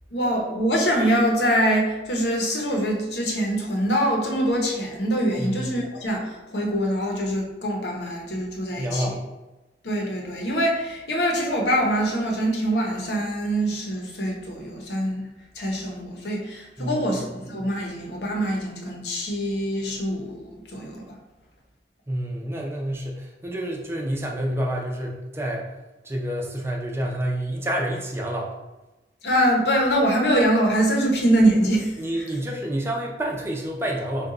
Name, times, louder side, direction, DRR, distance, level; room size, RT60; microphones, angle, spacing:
voice 1, 0.1-9.1 9.8-15.3 15.5-21.0 29.2-32.0, equal, 65° left, 0 dB, 0.8 m, -24 dB
voice 2, 5.4-5.7 8.8-9.2 16.8-17.2 22.1-25.7 26.0-28.5 32.0-34.3, right 1 dB, 15° right, -1 dB, 0.5 m, -28 dB
3.8 x 2.3 x 3.9 m, 1.1 s
head